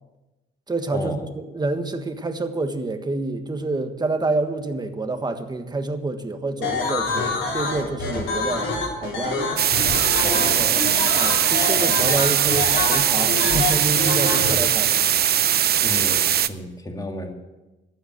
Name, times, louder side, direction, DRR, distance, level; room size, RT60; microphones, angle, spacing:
voice 1, 0.7-8.7 9.0-9.4 11.1-15.1, right 3 dB, 20° right, 7 dB, 1.5 m, -27 dB
sound 1, 6.6-14.5, left 3 dB, 75° left, 4.6 m, -26 dB
sound 2, 9.6-16.5, right 10 dB, 55° right, 0.6 m, -20 dB
voice 2, 10.2-10.9 14.4-14.5 15.8-17.3, left 1 dB, 20° left, 4 dB, 2.3 m, -32 dB
12.5 x 8.1 x 9.1 m, 1.1 s
cardioid pair, 90°, 20 cm